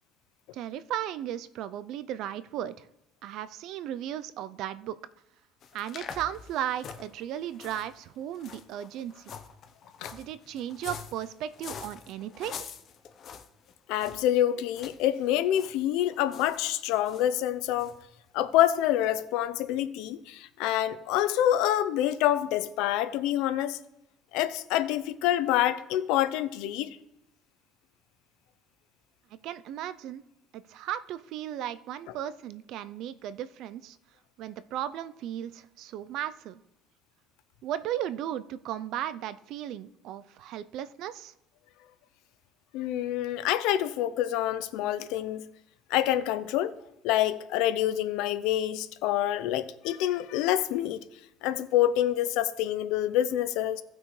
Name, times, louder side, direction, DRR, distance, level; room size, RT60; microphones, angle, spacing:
voice 1, 0.5-2.9 3.2-5.0 5.7-9.3 10.1-12.6 29.4-30.2 30.5-34.0 34.4-36.6 37.6-41.3, right 11 dB, 60° right, 0.5 m, -36 dB
sound 1, 5.6-14.3 14.7-15.0 15.3-15.8 16.0-17.3 17.8-18.0 18.6-18.7 19.0-19.1, left 7 dB, 45° left, 0.8 m, -45 dB
voice 2, 13.9-17.9 18.3-23.8 24.3-27.0 42.7-45.5 45.9-46.7 47.0-51.0 51.4-53.8, left 12 dB, 80° left, 0.6 m, -27 dB
17.0 x 6.1 x 3.2 m
cardioid pair, 135°, 0 cm